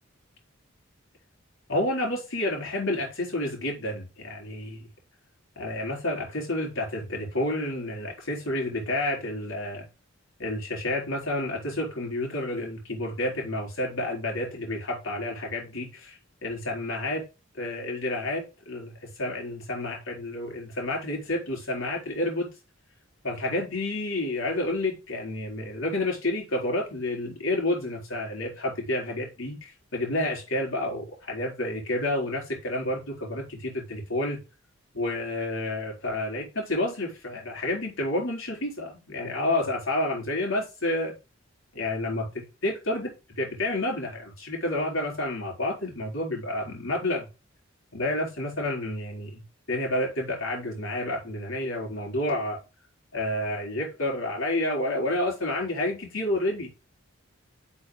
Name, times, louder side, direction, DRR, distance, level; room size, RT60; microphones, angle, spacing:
voice 1, 1.7-4.8 5.6-9.8 10.4-17.2 17.6-18.9 19.2-22.5 23.2-34.4 34.9-41.1 41.7-47.3 47.9-49.4 49.7-52.6 53.1-56.7, left 1 dB, 70° left, -1 dB, 4.2 m, -30 dB
6.2 x 5.4 x 3.9 m, 0.28 s
head